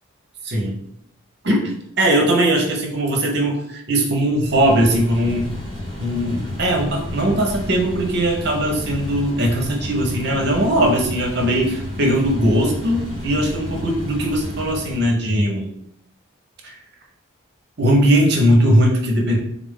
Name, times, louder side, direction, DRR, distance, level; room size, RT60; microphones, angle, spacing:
voice 1, 0.4-0.8 1.4-5.5 6.0-15.7 16.6-16.8 17.8-19.4, right 1 dB, 50° right, 1 dB, 0.8 m, -19 dB
sound 1, 4.3-15.2, left 1 dB, 20° left, 1.1 m, -31 dB
3.7 x 2.5 x 3.6 m, 0.74 s
head